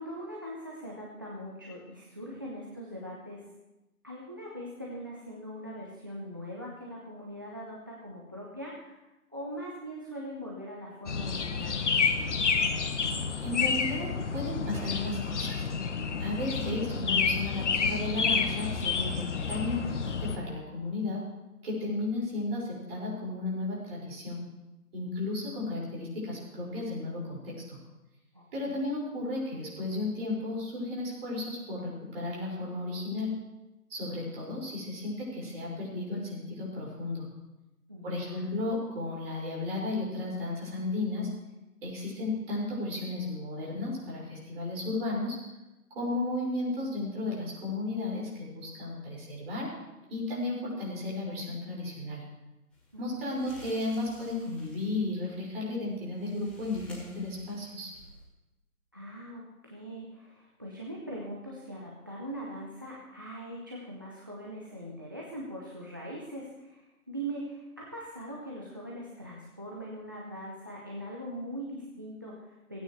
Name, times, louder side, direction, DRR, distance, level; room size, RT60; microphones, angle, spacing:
voice 1, 0.0-3.4 4.0-12.5 16.3-16.7 28.3-29.0 37.9-38.4 52.9-53.4 58.9-72.8, equal, 15° right, -4 dB, 0.6 m, -41 dB
sound 1, 11.1-20.4, left 5 dB, 50° left, 1.1 m, -29 dB
voice 2, 13.4-15.7 16.2-21.2 21.6-24.4 24.9-27.8 28.5-33.3 33.9-37.3 38.0-41.3 41.8-45.4 45.9-49.7 50.1-52.3 53.0-57.9, left 2 dB, 40° right, -4 dB, 5.5 m, -34 dB
sound 2, 52.7-58.2, equal, ahead, 1.7 m, -54 dB
27.0 x 9.2 x 3.2 m, 1.0 s
figure-of-eight pair, 150°, 46 cm